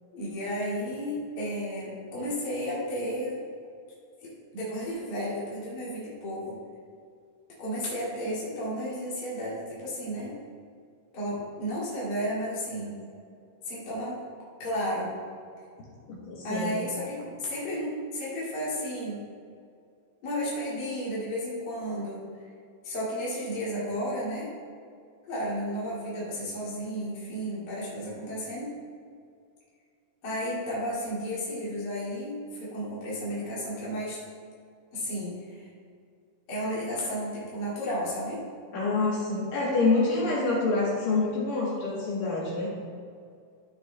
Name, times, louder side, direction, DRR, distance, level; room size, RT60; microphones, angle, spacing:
voice 1, 0.1-3.4 4.2-6.6 7.6-10.4 11.1-13.0 13.7-14.2 14.6-15.1 16.4-19.2 20.2-22.3 22.8-24.5 25.3-28.7 30.2-34.2 34.9-35.7 36.5-38.4, equal, 30° left, -8 dB, 2.4 m, -33 dB
voice 2, 16.1-16.8 38.7-42.7, left 3 dB, 65° left, -7 dB, 3.4 m, -26 dB
14.0 x 5.3 x 3.4 m, 2.3 s
omnidirectional pair, 4.3 m